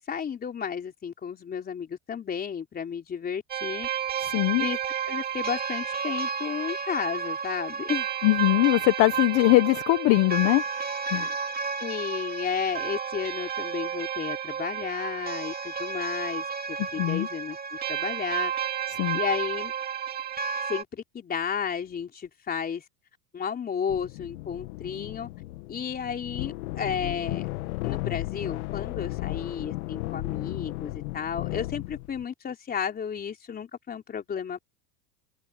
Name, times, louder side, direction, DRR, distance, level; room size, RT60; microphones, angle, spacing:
voice 1, 0.0-3.9 4.6-4.8 5.1-8.1 11.8-17.6 17.9-18.5 19.1-19.7 20.7-22.8 23.3-25.3 25.7-27.5 27.8-34.7, left 7 dB, 20° left, 3.8 m, -33 dB
sound 1, 3.5-20.8, right 7 dB, 20° right, 2.9 m, -31 dB
voice 2, 4.2-4.6 8.2-10.6 11.1-11.3 16.8-17.3 18.9-19.2, left 20 dB, 50° left, 1.1 m, -22 dB
sound 2, 23.9-32.2, left 19 dB, 85° left, 2.0 m, -34 dB
supercardioid pair, 150°, 42 cm